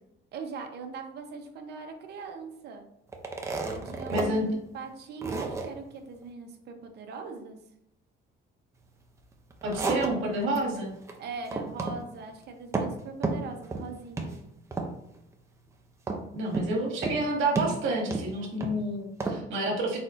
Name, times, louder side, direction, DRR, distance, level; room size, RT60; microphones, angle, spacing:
voice 1, 0.3-2.9 3.7-7.6 11.2-14.4, right 4 dB, 55° right, 5 dB, 0.7 m, -41 dB
sound 1, 3.1-4.3 4.7-4.8 5.2-5.7 9.3-10.6 10.9-11.2 11.4-12.0 12.3-13.0 13.2-13.9 14.2-14.4 14.7-15.2 16.1-16.7 17.0-17.2 17.6-18.8 19.2-19.4, right 3 dB, 15° right, 0.5 m, -31 dB
voice 2, 4.1-4.5 9.6-10.9 16.3-20.0, right 1 dB, 75° right, -1 dB, 1.5 m, -29 dB
4.2 x 4.1 x 2.5 m, 0.81 s
cardioid pair, 165°, 20 cm